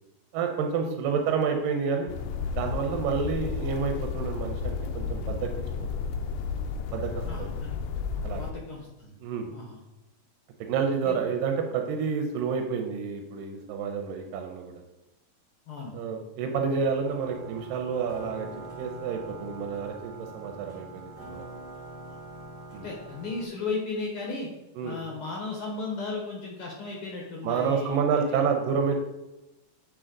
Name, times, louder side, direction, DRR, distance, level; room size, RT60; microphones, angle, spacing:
voice 1, 0.3-2.1 2.6-5.5 5.8-5.9 6.9-7.1 7.4-7.5 8.2-8.4 9.2-9.5 10.6-14.8 15.9-18.5 18.8-21.5 22.7-22.9 24.8-25.0 27.4-28.9, right 6 dB, 90° right, 4 dB, 2.4 m, -29 dB
sound 1, 2.1-8.5, left 5 dB, 85° left, 1.6 m, -32 dB
voice 2, 7.2-7.8 8.3-9.2 9.5-9.8 11.0-11.3 15.7-15.9 16.6-16.8 22.1-22.2 22.8-24.5 24.8-28.5, left 3 dB, 65° left, -2 dB, 1.4 m, -36 dB
sound 2, 17.0-23.5, right 2 dB, 15° right, 1.3 m, -43 dB
9.6 x 4.6 x 3.8 m, 0.98 s
omnidirectional pair, 3.9 m